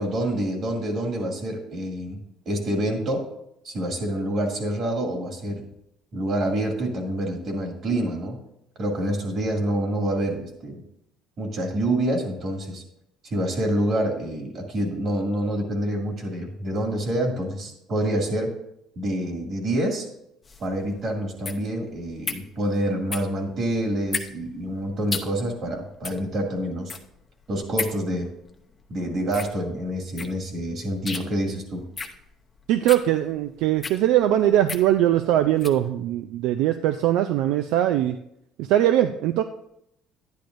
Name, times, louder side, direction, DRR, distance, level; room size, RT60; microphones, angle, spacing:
voice 1, 0.0-2.2 2.5-3.3 3.6-5.6 6.1-8.4 8.8-10.8 11.4-12.8 13.2-18.6 19.0-20.1 20.6-26.9 27.5-28.3 28.9-31.9, right 1 dB, 45° right, 1 dB, 2.3 m, -27 dB
sound 1, 20.4-35.8, left 4 dB, 20° left, 0.7 m, -36 dB
voice 2, 32.7-38.2 38.6-39.4, right 12 dB, 75° right, 8 dB, 0.4 m, -21 dB
10.5 x 10.5 x 2.6 m, 0.79 s
cardioid pair, 125°, 0 cm